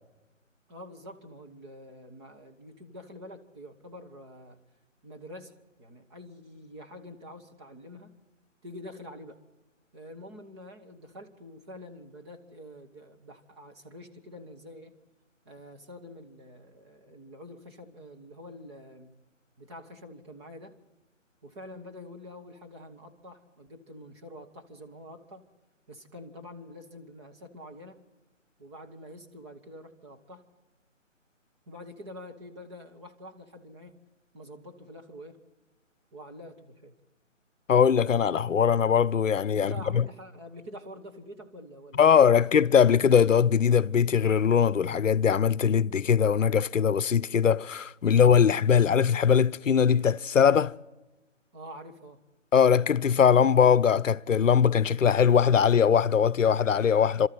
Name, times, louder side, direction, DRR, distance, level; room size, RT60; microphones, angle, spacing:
voice 1, 0.7-4.6 5.0-8.1 8.6-9.4 9.9-14.9 15.4-19.1 19.6-20.8 21.4-25.5 25.9-28.0 28.6-30.4 31.7-33.9 34.3-35.4 36.1-36.9 39.5-42.5 51.5-52.2, left 1 dB, 20° right, 1.5 m, -46 dB
voice 2, 37.7-40.0 42.0-50.7 52.5-57.3, left 7 dB, 75° left, 0.7 m, -21 dB
28.0 x 13.5 x 9.4 m
figure-of-eight pair, 155°, 39 cm